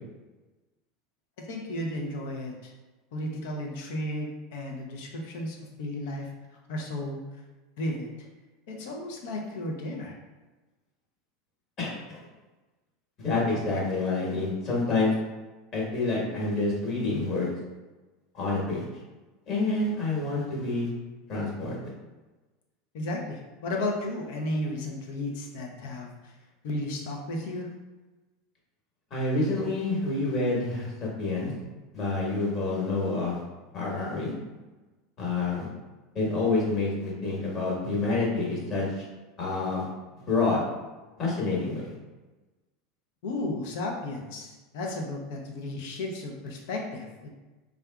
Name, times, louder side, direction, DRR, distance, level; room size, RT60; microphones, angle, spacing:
voice 1, 1.5-2.7 3.1-6.3 6.7-7.2 7.8-8.3 8.7-10.1 22.9-26.3 26.6-27.7 43.2-47.3, left 1 dB, 65° left, 0 dB, 0.6 m, -34 dB
voice 2, 11.8-12.2 13.2-15.1 15.7-17.5 18.3-18.8 19.5-20.9 21.3-21.8 29.1-31.5 31.9-33.4 33.7-34.3 35.2-35.7 36.1-39.0 39.4-39.9 40.3-40.6 41.2-41.9, left 3 dB, 45° left, -4 dB, 1.3 m, -28 dB
3.6 x 2.4 x 2.2 m, 1.2 s
hypercardioid pair, 85°, 0 cm